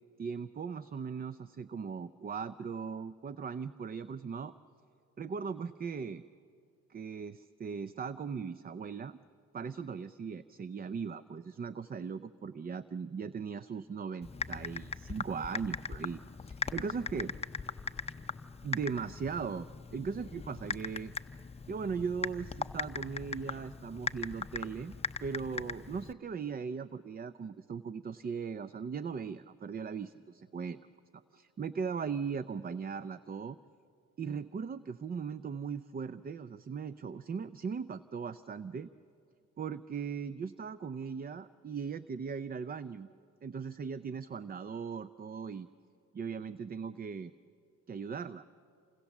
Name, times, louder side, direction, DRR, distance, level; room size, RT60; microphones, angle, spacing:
voice 1, 0.2-4.5 5.2-6.2 6.9-9.2 9.5-17.3 18.6-21.1 21.7-25.0 25.2-30.8 31.3-33.6 34.2-38.9 39.6-43.1 43.4-45.7 46.1-47.3 47.9-48.4, right 6 dB, 30° right, 14 dB, 0.5 m, -38 dB
Typing, 14.2-26.1, left 5 dB, 20° left, 0.7 m, -40 dB
28.0 x 25.5 x 7.2 m, 2.5 s
cardioid pair, 90°, 30 cm